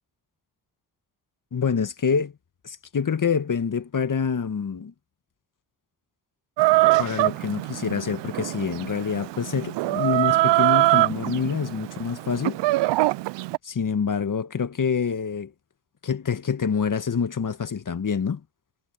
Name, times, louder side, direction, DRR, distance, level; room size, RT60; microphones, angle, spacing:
voice 1, 1.5-2.3 2.6-4.9 7.0-12.6 13.6-15.5 16.0-18.4, left 6 dB, 45° left, 1.9 m, -26 dB
Chicken rooster, 6.6-13.6, right 19 dB, 75° right, 0.6 m, -23 dB
hypercardioid pair, 45°, 43 cm